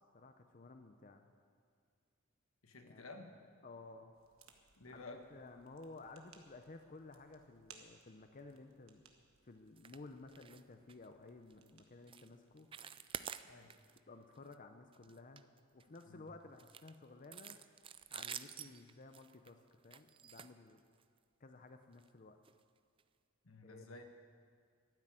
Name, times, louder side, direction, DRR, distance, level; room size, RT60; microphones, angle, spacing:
voice 1, 0.1-1.3 2.8-3.1 3.6-4.1 4.9-9.1 9.4-12.8 14.1-15.5 15.7-17.6 18.1-20.8 21.4-22.4 23.6-23.9, left 3 dB, 40° left, 6 dB, 0.7 m, -55 dB
voice 2, 2.6-3.3 4.7-5.2 13.5-13.7 16.1-16.3 23.4-24.0, left 2 dB, 85° left, 5 dB, 1.5 m, -52 dB
sound 1, 4.1-13.8, right 6 dB, 75° right, 1.3 m, -66 dB
sound 2, 9.8-10.0 10.3-10.6 10.9-11.1 11.5-11.7 12.1-12.3 12.6-14.0 14.3-14.5 14.9-16.0 16.6-21.2 21.9-22.1 22.4-22.5 23.0-23.1, right 8 dB, 25° right, 0.4 m, -49 dB
12.0 x 9.8 x 9.1 m, 2.1 s
head